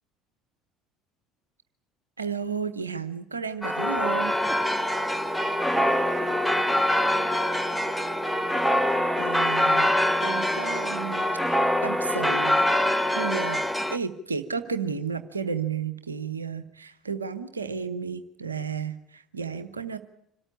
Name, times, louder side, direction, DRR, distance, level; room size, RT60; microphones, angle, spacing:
voice 1, 2.2-4.4 9.2-9.9 10.2-12.6 13.1-13.6 13.9-20.0, right 6 dB, 85° right, 10 dB, 0.9 m, -32 dB
sound 1, 3.6-14.0, left 1 dB, ahead, 1.1 m, -24 dB
voice 2, 4.3-4.8 6.0-8.1 13.8-13.9 14.6-14.7, left 2 dB, 45° left, -1 dB, 7.8 m, -50 dB
sound 2, 5.2-9.6, right 7 dB, 55° right, 1.1 m, -44 dB
26.0 x 13.5 x 9.8 m, 0.75 s
figure-of-eight pair, 60°, 0 cm